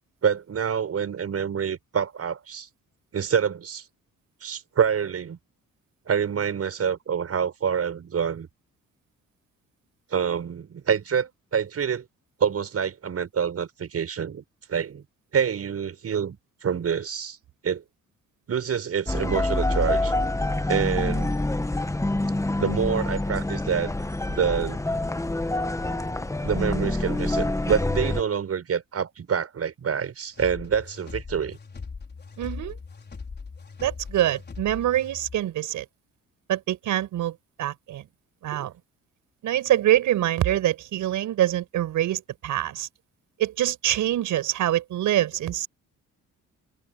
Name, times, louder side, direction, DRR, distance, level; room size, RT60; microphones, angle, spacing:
voice 1, 0.2-2.7 3.1-3.8 4.4-5.4 6.1-8.5 10.1-12.1 12.4-14.4 14.7-15.0 15.3-17.4 17.6-17.8 18.5-20.1 20.7-21.4 22.6-23.9 24.3-24.8 26.4-31.6 38.5-38.7, right 7 dB, 50° right, 7.2 m, -26 dB
sound 1, 19.1-28.2, left 2 dB, 10° left, 1.4 m, -26 dB
sound 2, 30.3-35.4, left 4 dB, 35° left, 4.8 m, -40 dB
voice 2, 32.4-32.8 33.8-35.8 36.5-38.0 38.4-38.7 39.4-42.9 43.4-45.7, right 13 dB, 80° right, 5.8 m, -25 dB
cardioid pair, 90°, 30 cm